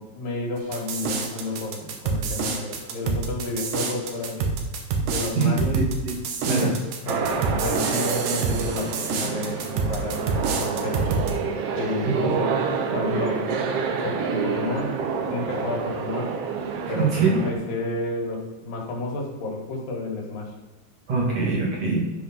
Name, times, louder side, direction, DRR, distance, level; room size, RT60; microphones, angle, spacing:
voice 1, 0.0-4.5 5.0-5.8 6.5-11.1 11.7-12.6 12.9-13.5 14.0-15.0 15.2-16.4 16.9-20.5, left 2 dB, 75° left, 0 dB, 3.3 m, -31 dB
sound 1, 0.7-11.3, right 4 dB, 70° right, 2.4 m, -27 dB
voice 2, 5.4-6.2 6.4-6.7 12.2-12.4 16.9-17.4 21.1-22.0, right 4 dB, 50° right, -3 dB, 2.9 m, -23 dB
sound 2, 7.1-17.5, right 5 dB, 90° right, 1.3 m, -28 dB
11.5 x 5.5 x 5.6 m, 1.1 s
omnidirectional pair, 4.1 m